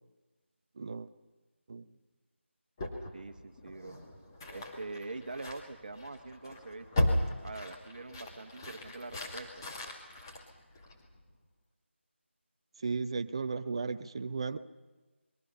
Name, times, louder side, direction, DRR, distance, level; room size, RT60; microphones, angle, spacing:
voice 1, 0.8-1.1 1.7-1.8 12.8-14.6, right 4 dB, 25° right, 11 dB, 0.7 m, -35 dB
sound 1, 2.8-11.2, left 1 dB, 20° left, 2.2 m, -37 dB
voice 2, 3.1-4.0 4.5-7.1 7.4-9.6, right 3 dB, 40° right, 8 dB, 1.6 m, -44 dB
29.0 x 22.0 x 5.7 m, 1.2 s
figure-of-eight pair, 165°, 7 cm